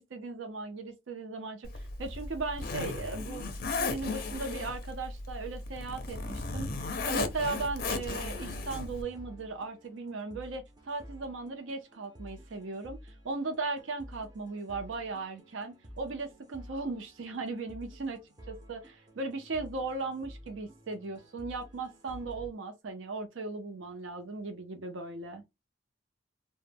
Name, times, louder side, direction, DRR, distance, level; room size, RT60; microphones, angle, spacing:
voice 1, 0.0-3.5 3.8-6.7 7.1-18.2 18.5-25.4, right 3 dB, 75° right, 0.5 m, -37 dB
Zipper (clothing), 1.6-9.0, left 3 dB, 50° left, 0.5 m, -36 dB
sound 1, 7.5-22.5, equal, 20° right, 0.5 m, -51 dB
2.1 x 2.1 x 3.2 m
head